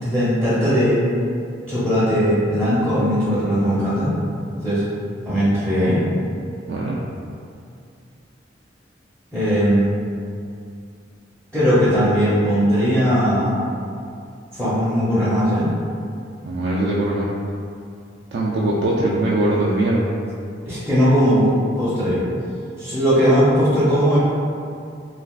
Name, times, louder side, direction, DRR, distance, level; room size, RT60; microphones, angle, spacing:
voice 1, 0.0-1.0 1.7-4.1 4.6-4.8 5.2-6.0 9.3-9.9 11.5-13.5 14.5-15.7 20.7-22.2 22.8-24.2, equal, 5° left, -12 dB, 0.7 m, -18 dB
voice 2, 16.5-17.3 18.3-20.1, right 1 dB, 60° right, -5 dB, 0.3 m, -21 dB
3.3 x 2.4 x 2.3 m, 2.4 s
head